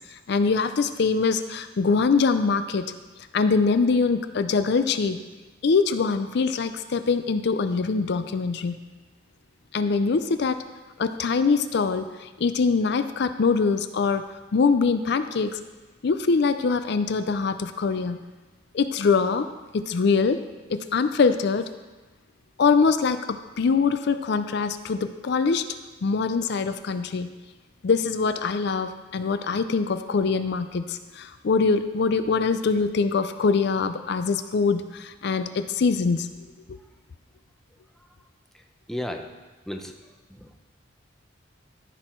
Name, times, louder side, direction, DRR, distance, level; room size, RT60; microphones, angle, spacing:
voice 1, 0.1-2.9 3.3-5.2 5.6-8.8 9.7-10.6 11.0-14.3 14.5-15.6 16.0-18.2 18.7-19.5 19.7-20.4 20.7-21.7 22.6-25.6 26.0-27.3 27.8-36.3 36.7-36.8, left 4 dB, 60° left, 10 dB, 0.4 m, -23 dB
voice 2, 38.9-39.3 39.7-39.9 40.3-40.5, left 1 dB, ahead, 3 dB, 0.7 m, -33 dB
14.0 x 6.2 x 4.4 m, 1.2 s
head